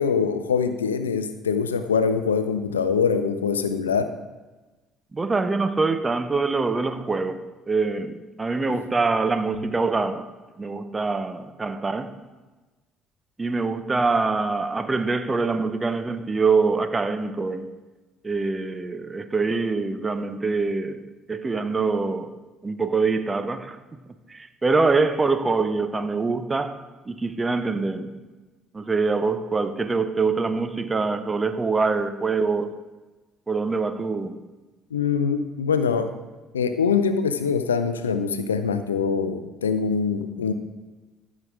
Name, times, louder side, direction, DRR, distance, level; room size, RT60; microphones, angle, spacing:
voice 1, 0.0-4.2 34.9-36.2 36.5-40.5, left 6 dB, 90° left, 0.4 m, -23 dB
voice 2, 5.1-10.3 10.6-12.1 13.4-17.7 18.2-22.4 22.6-23.8 24.3-26.8 27.1-28.2 28.7-32.7 33.5-34.4, right 4 dB, 25° right, 0.8 m, -24 dB
13.5 x 6.3 x 3.6 m
hypercardioid pair, 50°, 0 cm